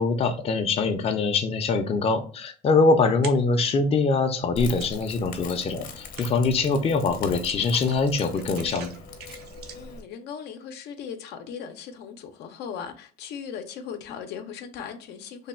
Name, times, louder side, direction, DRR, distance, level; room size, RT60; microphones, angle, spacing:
voice 1, 0.0-8.9, left 4 dB, 35° left, 0.5 m, -23 dB
sound 1, 3.0-3.7 4.1-5.4 5.7-10.0, right 6 dB, 75° right, 0.7 m, -44 dB
Crackle, 4.6-10.0, left 3 dB, 55° left, 0.8 m, -40 dB
voice 2, 9.7-15.5, left 7 dB, 80° left, 0.6 m, -38 dB
3.3 x 2.2 x 4.3 m
cardioid pair, 110°, 17 cm